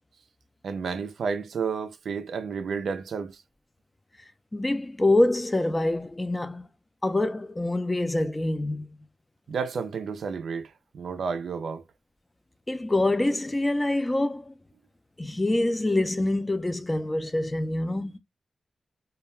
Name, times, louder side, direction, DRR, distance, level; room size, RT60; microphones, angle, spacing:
voice 1, 0.6-3.4 9.5-11.8, right 5 dB, 75° right, 0.3 m, -31 dB
voice 2, 4.5-6.7 7.0-8.9 12.7-14.5 15.2-18.2, left 2 dB, 15° left, 0.4 m, -25 dB
2.3 x 2.1 x 3.0 m
wide cardioid pair, 140°, 0 cm